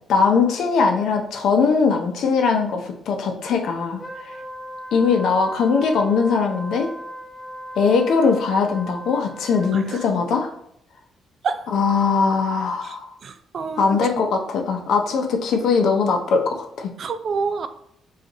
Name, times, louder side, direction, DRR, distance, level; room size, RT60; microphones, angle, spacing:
voice 1, 0.1-4.4 4.9-6.9 7.8-10.5 11.7-13.1 13.8-16.9, left 5 dB, 75° left, 4 dB, 0.6 m, -20 dB
Wind instrument woodwind instrument, 4.0-10.3, equal, 10° left, 0.7 m, -37 dB
voice 2, 9.7-10.0 11.4-11.7 12.8-13.0 13.2-14.0 17.0-17.7, right 5 dB, 55° right, 10 dB, 0.3 m, -28 dB
5.0 x 2.5 x 2.9 m, 0.72 s
cardioid pair, 90°, 0 cm